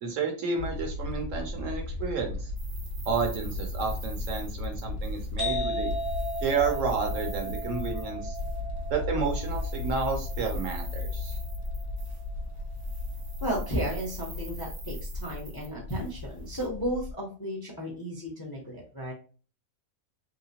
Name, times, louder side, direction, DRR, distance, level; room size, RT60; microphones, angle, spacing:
voice 1, 0.0-2.5 3.1-5.9 6.4-8.4 8.9-11.4, right 5 dB, 65° right, 4 dB, 1.0 m, -31 dB
sound 1, 0.6-17.1, left 2 dB, 65° left, 0.9 m, -35 dB
sound 2, 2.6-5.5 5.8-8.6 9.2-12.4 12.7-16.7, right 4 dB, 85° right, 1.3 m, -48 dB
sound 3, 5.4-12.8, right 1 dB, 20° right, 0.6 m, -37 dB
voice 2, 13.4-19.1, equal, 25° left, -2 dB, 0.5 m, -34 dB
3.1 x 2.9 x 2.8 m, 0.39 s
omnidirectional pair, 1.5 m